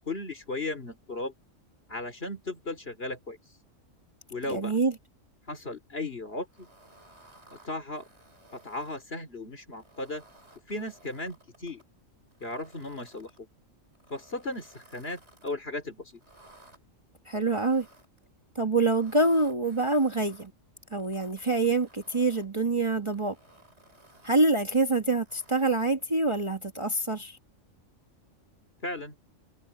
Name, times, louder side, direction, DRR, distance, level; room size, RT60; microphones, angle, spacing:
voice 1, 0.0-1.3 1.9-3.4 4.3-4.8 5.5-6.7 7.5-8.1 8.5-10.2 10.7-11.8 12.4-13.3 14.1-16.2 28.8-29.2, left 2 dB, 50° left, 3.7 m, -36 dB
voice 2, 4.5-4.9 17.3-17.9 18.5-20.5 20.9-23.4 24.2-27.4, right 3 dB, 25° right, 1.4 m, -26 dB
sound 1, 6.5-9.0 9.6-11.8 12.3-13.4 13.9-15.6 16.1-16.8 17.4-18.2 18.8-20.5 21.0-22.5 23.0-24.5 25.1-26.0, right 1 dB, 55° right, 6.6 m, -57 dB
omnidirectional pair, 1.4 m